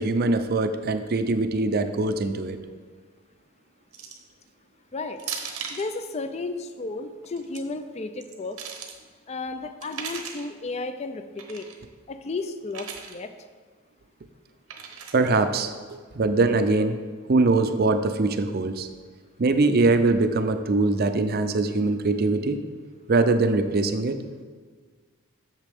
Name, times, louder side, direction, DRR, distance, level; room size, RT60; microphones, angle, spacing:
voice 1, 0.0-2.6 15.1-17.0 17.3-18.9 19.4-22.6 23.1-24.2, right 3 dB, 45° right, 9 dB, 0.5 m, -22 dB
sound 1, 3.9-4.3 5.2-5.9 7.2-7.6 8.2-9.0 9.8-10.5 11.4-11.8 12.7-13.2 14.7-15.3, right 6 dB, 85° right, 1.0 m, -37 dB
voice 2, 5.7-8.6 9.3-11.7 12.1-13.3, left 3 dB, 30° left, 9 dB, 0.4 m, -33 dB
8.2 x 6.6 x 3.5 m, 1.5 s
head